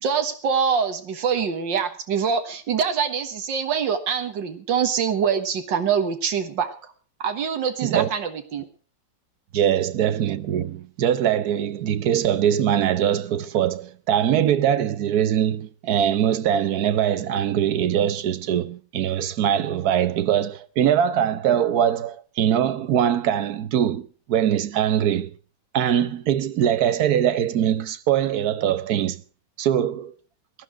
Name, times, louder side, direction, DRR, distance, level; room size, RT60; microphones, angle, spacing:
voice 1, 0.0-6.9 7.2-8.6, right 7 dB, 85° right, 2.1 m, -24 dB
voice 2, 9.5-25.3 25.7-29.2 29.6-30.1, right 10 dB, 60° right, 1.3 m, -22 dB
18.0 x 11.5 x 4.8 m
omnidirectional pair, 1.9 m